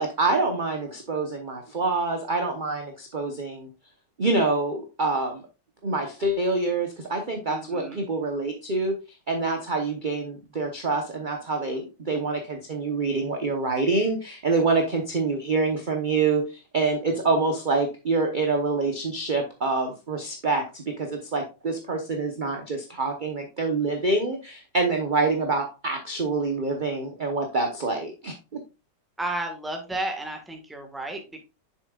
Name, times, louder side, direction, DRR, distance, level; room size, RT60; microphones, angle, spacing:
voice 1, 0.0-3.7 4.2-5.4 5.8-9.0 9.3-28.3, right 3 dB, 35° right, 3 dB, 0.9 m, -26 dB
voice 2, 7.5-8.0 29.2-31.4, right 1 dB, ahead, 3 dB, 1.3 m, -32 dB
7.4 x 6.8 x 2.4 m, 0.29 s
omnidirectional pair, 1.9 m